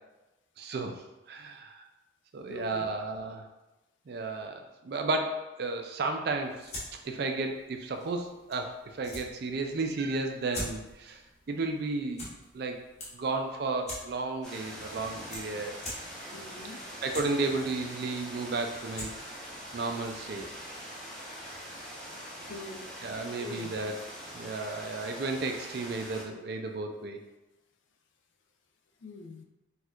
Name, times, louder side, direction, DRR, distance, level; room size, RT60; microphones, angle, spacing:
voice 1, 0.6-1.8 2.3-3.5 4.1-6.7 7.0-11.2 11.5-12.2 12.5-12.8 13.1-15.7 17.0-19.1 19.7-20.5 22.1-22.2 23.0-24.0 24.3-27.2, right 3 dB, 50° right, 4 dB, 0.4 m, -33 dB
voice 2, 2.5-2.8 16.3-16.9 22.5-22.9 23.4-23.7 29.0-29.4, left 3 dB, 70° left, 4 dB, 0.4 m, -43 dB
sound 1, 6.3-20.7, left 1 dB, 35° left, 0.8 m, -46 dB
sound 2, 14.4-26.2, equal, 5° left, 0.7 m, -43 dB
4.3 x 2.4 x 2.4 m, 1.0 s
head